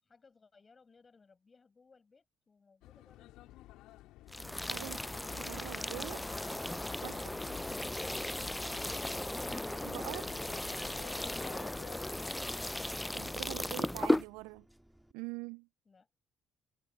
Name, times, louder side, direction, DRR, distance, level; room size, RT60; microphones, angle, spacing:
voice 1, 0.0-3.6 15.8-16.1, left 4 dB, 35° left, 5.9 m, -65 dB
sound 1, 2.8-12.0, left 16 dB, 70° left, 2.6 m, -54 dB
sound 2, 4.3-14.2, left 1 dB, 10° left, 0.5 m, -36 dB
Subway metro underground, 4.4-15.1, right 1 dB, 5° right, 2.1 m, -57 dB
voice 2, 5.3-6.3 7.0-7.3 9.8-10.3 13.1-14.6 15.1-15.7, right 27 dB, 75° right, 0.3 m, -44 dB
hypercardioid pair, 45°, 0 cm